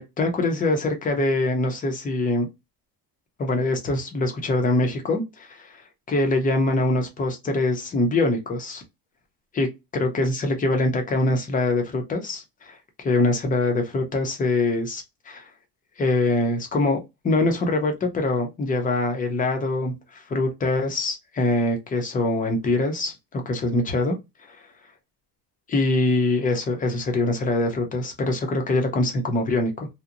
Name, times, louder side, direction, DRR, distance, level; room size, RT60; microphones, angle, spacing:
voice 1, 0.0-2.5 3.4-5.8 6.1-8.8 9.5-15.5 16.0-24.2 24.5-24.6 25.7-29.9, left 2 dB, 20° left, 0.5 m, -24 dB
2.8 x 2.0 x 2.4 m
cardioid pair, 160°, 42 cm